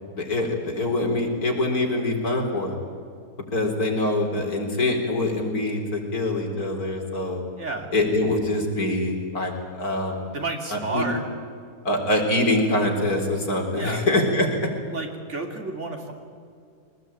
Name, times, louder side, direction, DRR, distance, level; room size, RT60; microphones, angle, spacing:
voice 1, 0.1-2.8 3.5-7.4 7.9-9.5 9.8-10.4 10.7-11.0 11.8-14.5, left 2 dB, 70° left, 1 dB, 4.5 m, -24 dB
voice 2, 7.6-7.9 10.3-11.2 13.7-14.1 14.9-16.1, right 3 dB, 45° right, 3 dB, 3.1 m, -31 dB
23.0 x 20.0 x 9.0 m, 2.3 s
omnidirectional pair, 1.7 m